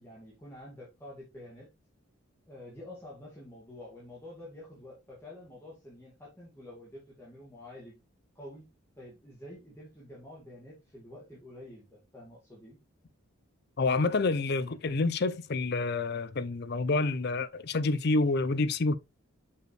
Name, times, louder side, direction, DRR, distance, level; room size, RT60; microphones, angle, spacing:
voice 1, 0.0-1.7 2.5-8.0 8.4-8.7 9.0-12.8, left 1 dB, 10° left, 2.1 m, -48 dB
voice 2, 13.8-19.0, left 3 dB, 50° left, 0.5 m, -28 dB
6.3 x 5.4 x 3.2 m
head